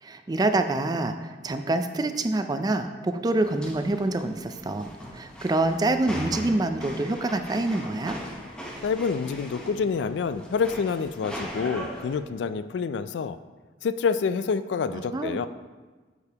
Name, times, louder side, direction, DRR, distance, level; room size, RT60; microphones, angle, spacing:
voice 1, 0.0-8.2 15.1-15.5, right 2 dB, 20° right, 8 dB, 0.4 m, -26 dB
sound 1, 3.4-12.2, equal, 5° left, 0.8 m, -40 dB
voice 2, 8.8-13.4 13.8-15.5, left 5 dB, 90° left, 13 dB, 0.3 m, -27 dB
8.1 x 6.7 x 2.9 m, 1.3 s
head